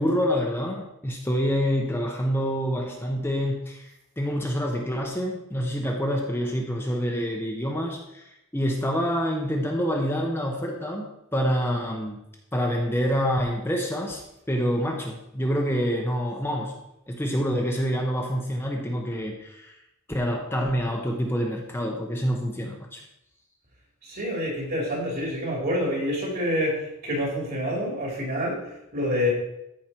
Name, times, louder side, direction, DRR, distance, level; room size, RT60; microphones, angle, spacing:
voice 1, 0.0-11.1 11.3-12.2 12.5-14.2 14.5-16.7 17.1-19.8 20.1-23.0, equal, 10° left, 0 dB, 1.0 m, -27 dB
voice 2, 24.0-29.3, left 1 dB, 50° right, -2 dB, 3.7 m, -27 dB
14.0 x 5.1 x 4.5 m, 0.86 s
head